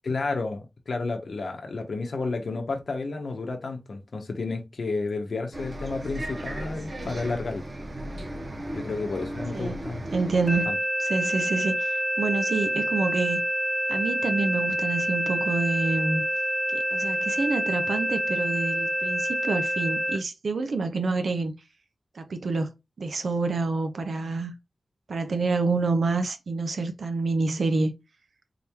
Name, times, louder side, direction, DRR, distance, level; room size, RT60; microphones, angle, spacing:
voice 1, 0.0-7.7 8.7-10.1 10.6-10.8, left 3 dB, 75° left, 0.8 m, -31 dB
Bus, 5.5-10.6, right 1 dB, 50° right, 1.2 m, -36 dB
voice 2, 10.1-13.4 13.9-16.2 16.7-21.5 22.1-22.7 23.0-24.5 25.1-27.9, right 3 dB, 80° right, 0.9 m, -27 dB
sound 1, 10.5-20.2, equal, 15° right, 1.7 m, -27 dB
3.9 x 3.5 x 2.9 m
wide cardioid pair, 95°, 0 cm